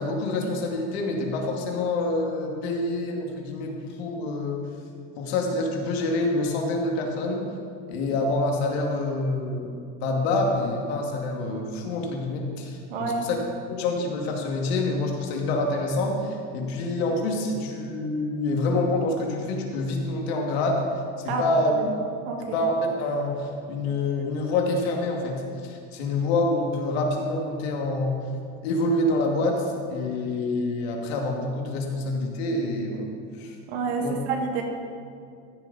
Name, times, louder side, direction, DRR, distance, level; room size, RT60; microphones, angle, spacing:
voice 1, 0.0-4.7 5.2-7.5 7.9-13.4 13.7-20.9 21.2-21.7 22.5-28.2 28.6-33.1 33.4-33.5 34.0-34.1, left 2 dB, 80° left, 1 dB, 2.4 m, -27 dB
voice 2, 12.9-13.3 21.3-21.5 21.8-21.9 22.3-22.6 33.7-34.6, right 4 dB, 90° right, 2 dB, 2.1 m, -28 dB
14.5 x 10.5 x 4.2 m, 2.3 s
cardioid pair, 165°, 31 cm